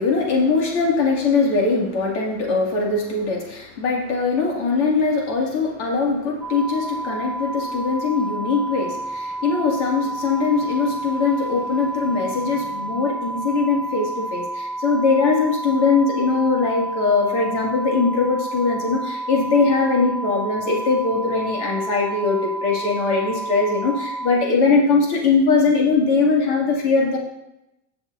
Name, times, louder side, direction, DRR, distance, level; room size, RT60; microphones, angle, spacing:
voice 1, 0.0-27.2, left 4 dB, 90° left, -2 dB, 2.4 m, -21 dB
sound 1, 6.4-24.3, right 2 dB, 5° right, 0.7 m, -30 dB
17.5 x 6.0 x 2.6 m, 0.90 s
supercardioid pair, 145°, 34 cm